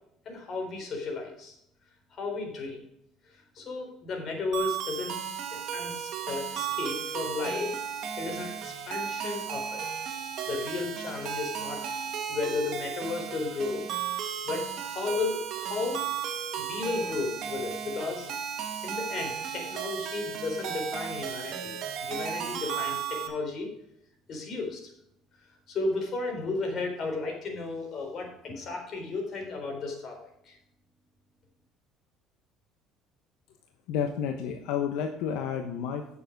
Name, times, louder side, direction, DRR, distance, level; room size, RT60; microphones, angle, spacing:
voice 1, 0.3-1.6 2.2-2.8 3.5-5.2 5.5-7.8 8.2-9.9 10.5-12.0 12.3-13.9 14.4-16.0 16.5-18.3 18.8-23.7 24.3-24.9 25.7-30.2 30.4-30.6, left 3 dB, 45° left, 2 dB, 3.8 m, -34 dB
sound 1, 4.5-23.3, right 8 dB, 60° right, 1.6 m, -35 dB
voice 2, 33.9-36.1, left 7 dB, 80° left, 5 dB, 1.0 m, -30 dB
9.4 x 6.9 x 5.3 m, 0.76 s
cardioid pair, 125°, 0 cm